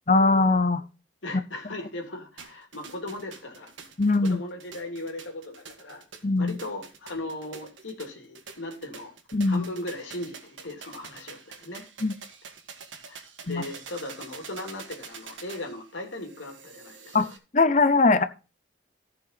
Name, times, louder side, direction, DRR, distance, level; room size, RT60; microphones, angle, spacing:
voice 1, 0.1-0.8 4.0-4.4 6.2-6.6 9.3-9.7 12.0-12.1 13.5-13.7 17.1-17.3 17.5-18.2, left 3 dB, 40° left, 11 dB, 0.7 m, -21 dB
voice 2, 1.2-3.7 4.2-6.0 6.4-9.1 9.5-11.8 13.1-17.2, left 2 dB, 80° left, 3 dB, 2.9 m, -38 dB
sound 1, 2.4-17.4, right 5 dB, 80° right, 1.8 m, -46 dB
14.5 x 5.8 x 4.1 m, 0.32 s
head